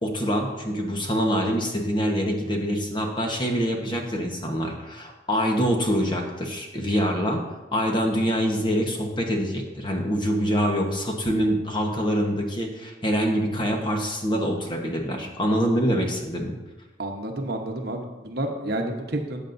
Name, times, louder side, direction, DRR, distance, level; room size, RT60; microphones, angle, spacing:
voice 1, 0.0-7.4 7.7-16.5, equal, 25° left, 2 dB, 1.2 m, -25 dB
voice 2, 17.0-19.4, right 1 dB, 55° right, 3 dB, 1.1 m, -30 dB
13.5 x 8.6 x 2.7 m, 1.1 s
head